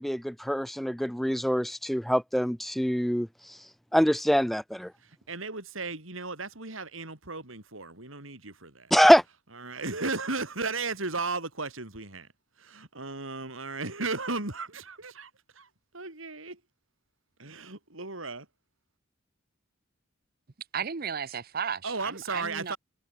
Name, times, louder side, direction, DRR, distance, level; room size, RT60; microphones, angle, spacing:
voice 1, 0.0-3.6 3.9-4.9 8.9-9.2, equal, ahead, 0.3 m, -24 dB
voice 2, 5.0-8.9 9.6-12.3 12.6-15.3 15.6-15.7 15.9-16.6 17.4-18.5 21.8-22.8, right 3 dB, 80° right, 5.4 m, -35 dB
voice 3, 20.7-22.7, right 7 dB, 45° right, 0.8 m, -34 dB
head